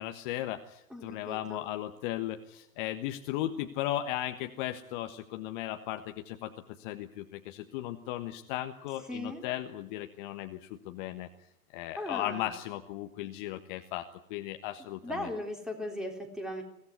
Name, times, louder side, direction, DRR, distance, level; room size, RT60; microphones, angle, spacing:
voice 1, 0.0-6.5 6.8-11.3 11.7-14.0 14.3-15.3, left 13 dB, 35° left, 7 dB, 1.4 m, -36 dB
voice 2, 0.9-1.7 9.1-9.4 12.0-12.5 15.0-16.6, left 1 dB, ahead, 4 dB, 3.6 m, -38 dB
23.5 x 17.5 x 9.7 m, 0.76 s
figure-of-eight pair, 110°, 46 cm